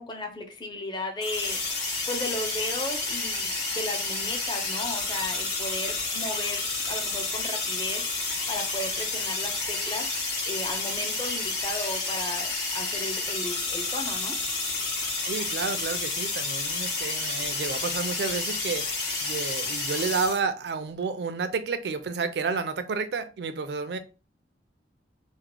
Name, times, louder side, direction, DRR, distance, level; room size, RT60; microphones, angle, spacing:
voice 1, 0.0-8.0 8.5-10.1 10.5-14.4, left 1 dB, 25° left, 0.6 m, -35 dB
sound 1, 1.2-20.4, left 3 dB, 70° left, 1.8 m, -30 dB
voice 2, 15.2-18.8 19.2-24.0, right 4 dB, 65° right, 0.4 m, -30 dB
3.6 x 2.1 x 3.2 m
head